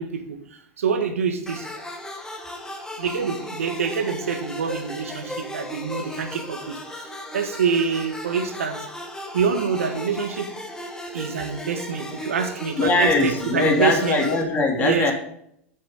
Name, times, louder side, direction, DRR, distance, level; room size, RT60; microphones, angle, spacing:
voice 1, 0.0-1.7 3.0-8.8 9.3-10.5 11.1-14.2 14.8-15.1, right 6 dB, 85° right, 6 dB, 1.6 m, -26 dB
sound 1, 1.5-14.4, left 1 dB, 10° left, 1.7 m, -36 dB
voice 2, 12.8-15.1, left 2 dB, 25° left, 2 dB, 2.8 m, -21 dB
9.8 x 6.7 x 5.1 m, 0.72 s
hypercardioid pair, 110°, 7 cm